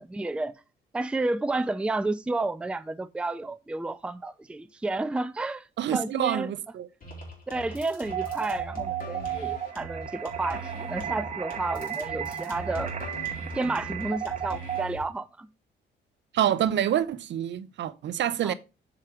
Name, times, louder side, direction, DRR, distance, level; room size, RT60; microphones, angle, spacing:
voice 1, 0.1-0.5 0.9-6.5 7.5-12.9 13.5-15.5 18.4-18.5, right 2 dB, 5° right, 0.4 m, -31 dB
voice 2, 5.8-6.9 16.3-18.5, right 10 dB, 65° right, 0.7 m, -27 dB
sound 1, 7.0-15.0, right 1 dB, 45° left, 3.9 m, -40 dB
sound 2, 8.0-14.8, right 9 dB, 35° right, 1.1 m, -34 dB
7.5 x 5.0 x 4.4 m
cardioid pair, 90°, 20 cm